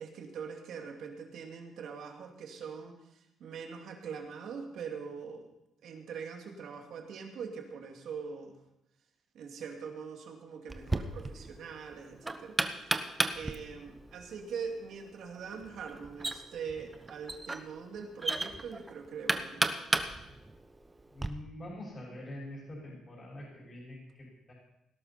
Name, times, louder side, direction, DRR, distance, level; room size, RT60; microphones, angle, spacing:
voice 1, 0.0-5.5 5.8-8.5 9.3-13.0 13.3-19.8, right 6 dB, 70° right, 3 dB, 2.5 m, -43 dB
Knock, 10.7-21.3, right 2 dB, 20° right, 1.0 m, -35 dB
voice 2, 21.1-24.5, left 1 dB, 35° left, -3 dB, 6.0 m, -45 dB
18.5 x 12.0 x 4.3 m, 0.85 s
cardioid pair, 90°, 0 cm